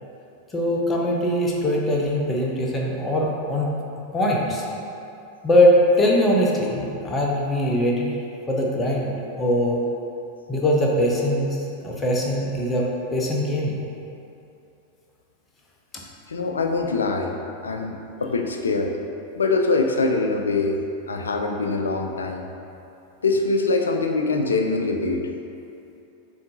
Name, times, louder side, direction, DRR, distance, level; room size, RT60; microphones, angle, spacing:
voice 1, 0.5-3.7 4.1-4.6 5.4-8.2 8.5-9.1 9.4-9.8 10.5-13.7, left 1 dB, 15° left, -2 dB, 0.7 m, -21 dB
voice 2, 16.3-17.3 17.6-19.0 19.4-20.8 21.1-22.4 23.2-25.3, left 3 dB, 70° left, 3 dB, 0.4 m, -23 dB
6.9 x 2.6 x 2.7 m, 2.7 s
figure-of-eight pair, 90°, 0 cm